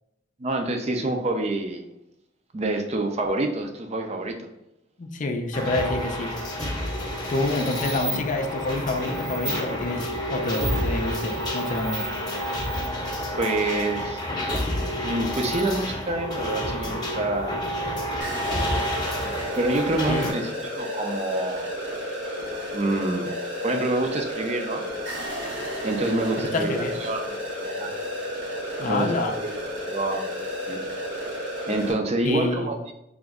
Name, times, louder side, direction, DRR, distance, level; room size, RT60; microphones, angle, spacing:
voice 1, 0.4-1.9 2.5-4.5 13.4-14.2 15.0-17.6 19.3-20.5 20.8-21.7 22.7-23.3 23.6-24.8 25.8-27.2 27.8-27.9 28.8-29.5 29.9-30.8 31.7-32.8, right 2 dB, 35° right, 4 dB, 0.5 m, -27 dB
voice 2, 5.0-6.5 7.3-12.0 20.1-20.3 26.4-26.9 28.8-29.4 32.2-32.7, left 2 dB, 45° left, 5 dB, 0.5 m, -28 dB
sound 1, 5.5-20.3, equal, 25° left, 0.9 m, -29 dB
sound 2, 7.3-12.9, right 2 dB, 70° right, 1.0 m, -37 dB
sound 3, 18.2-31.9, equal, 90° right, 1.3 m, -32 dB
3.5 x 3.0 x 3.6 m, 0.86 s
head